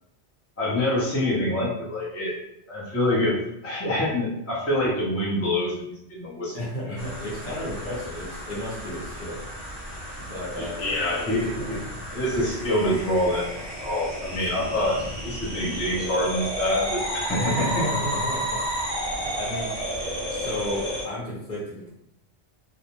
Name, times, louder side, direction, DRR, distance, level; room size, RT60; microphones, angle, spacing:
voice 1, 0.6-2.4 2.7-3.4 3.6-6.6 6.9-7.0 10.6-11.8 12.1-17.8, left 1 dB, 20° left, -6 dB, 0.5 m, -26 dB
voice 2, 6.5-9.4 10.2-11.0 11.4-12.0 14.4-14.5 17.3-18.7 19.0-20.0 20.3-21.9, equal, 50° left, -6 dB, 0.8 m, -33 dB
sound 1, 7.0-21.0, equal, 40° right, 0.4 m, -32 dB
2.4 x 2.0 x 2.9 m, 0.79 s
omnidirectional pair, 1.2 m